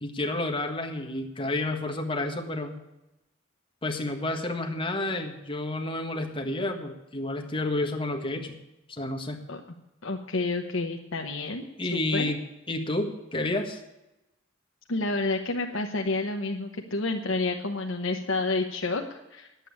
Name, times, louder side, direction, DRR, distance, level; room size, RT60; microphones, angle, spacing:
voice 1, 0.0-2.8 3.8-8.5 8.9-9.4 11.8-12.4 12.7-13.8, left 2 dB, 25° left, 4 dB, 1.5 m, -30 dB
voice 2, 10.0-11.6 11.9-12.3 14.9-19.7, left 3 dB, 85° left, 2 dB, 1.0 m, -29 dB
10.5 x 8.4 x 8.4 m, 0.93 s
head